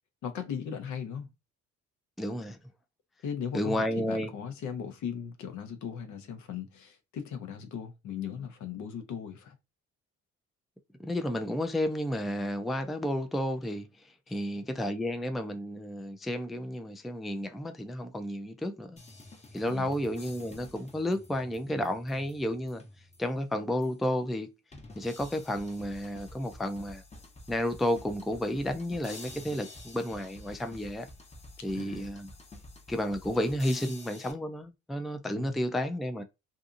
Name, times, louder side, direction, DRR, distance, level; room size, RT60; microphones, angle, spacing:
voice 1, 0.2-1.3 3.2-9.6 14.3-14.4 19.7-19.9 31.7-32.1 35.4-35.6, left 7 dB, 75° left, 0.7 m, -38 dB
voice 2, 2.2-2.6 3.5-4.3 11.0-19.0 19.5-24.5 25.0-27.0 27.5-31.1 31.6-32.3 32.9-36.2, left 1 dB, ahead, 0.3 m, -32 dB
sound 1, 19.0-23.4 23.8-23.9 24.7-34.3, left 2 dB, 20° left, 0.8 m, -49 dB
2.7 x 2.5 x 2.4 m
cardioid pair, 90°, 30 cm